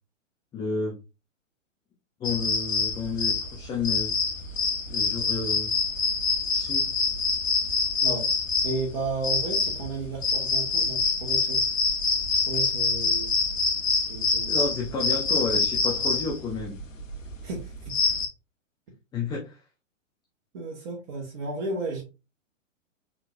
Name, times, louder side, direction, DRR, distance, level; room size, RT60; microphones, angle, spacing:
voice 1, 0.5-1.0 2.2-4.1 4.9-5.7 6.5-6.9 14.5-16.8 19.1-19.6, left 4 dB, 10° left, 0 dB, 0.5 m, -31 dB
sound 1, 2.2-18.3, left 4 dB, 75° left, 1.1 m, -26 dB
voice 2, 8.6-11.6 12.3-13.3 14.1-15.0 17.4-18.0 20.5-22.0, right 3 dB, 50° right, -3 dB, 1.6 m, -34 dB
3.9 x 3.9 x 2.5 m, 0.28 s
hypercardioid pair, 120°, 39 cm